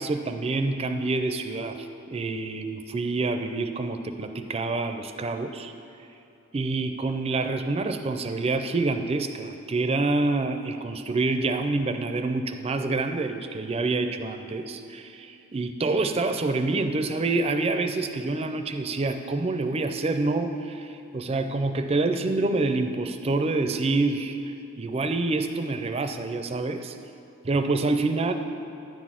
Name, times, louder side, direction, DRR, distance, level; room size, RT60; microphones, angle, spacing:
voice 1, 0.0-5.7 6.5-24.4 24.8-27.0 27.4-28.3, right 3 dB, 25° right, 7 dB, 0.4 m, -27 dB
10.5 x 4.1 x 7.5 m, 2.7 s
head